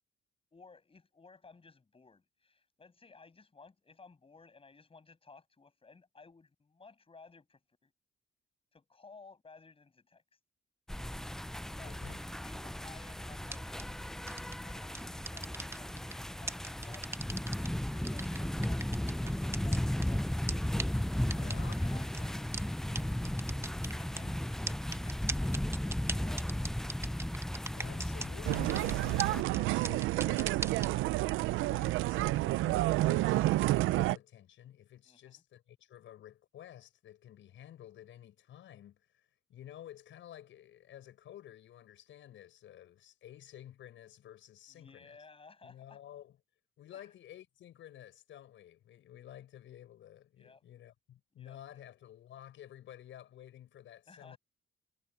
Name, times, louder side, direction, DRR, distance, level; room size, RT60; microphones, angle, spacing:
voice 1, 0.5-7.9 8.7-10.2 11.8-12.0 12.4-18.9 19.2-20.4 21.3-23.2 24.0-26.6 35.0-35.4 44.7-46.0 46.9-47.1 50.4-50.6 51.4-51.9 54.1-54.4, left 4 dB, 30° left, 7.5 m, -57 dB
sound 1, 10.9-29.4, left 1 dB, ahead, 0.4 m, -35 dB
voice 2, 11.8-12.2 21.3-21.8 24.1-24.4 27.7-29.1 29.5-45.2 45.6-46.4 46.8-54.4, left 11 dB, 75° left, 6.3 m, -52 dB
sound 2, 13.5-13.8 14.3-14.5 14.9-16.1 16.5-17.7 18.0-20.0 20.5-20.6 20.8-20.9 21.3-21.7 22.1-22.2 22.5-22.6 22.9-23.0 23.2-24.2 24.7-28.3 28.5-28.9 29.2-29.3 29.5-29.6 29.8-30.9, right 2 dB, 15° right, 0.9 m, -38 dB
sound 3, 28.5-34.2, right 17 dB, 90° right, 0.5 m, -29 dB
cardioid pair, 90°, 20 cm